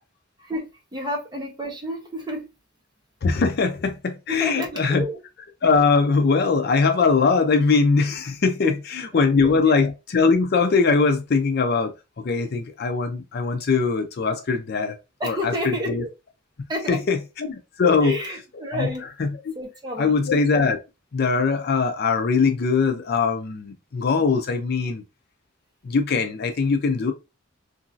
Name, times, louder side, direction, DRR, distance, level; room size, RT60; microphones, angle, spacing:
voice 1, 0.4-2.5 4.3-5.2 8.6-8.7 9.1-9.2 15.2-16.1 16.7-17.0 17.8-19.0 19.5-20.2, equal, 20° right, 0.9 m, -30 dB
voice 2, 3.2-5.0 5.6-15.0 15.2-16.0 16.9-18.2 18.7-18.9 19.2-19.6 20.0-20.8 21.1-25.0 25.8-27.1, left 4 dB, 55° left, 0.5 m, -21 dB
2.9 x 2.5 x 2.5 m
head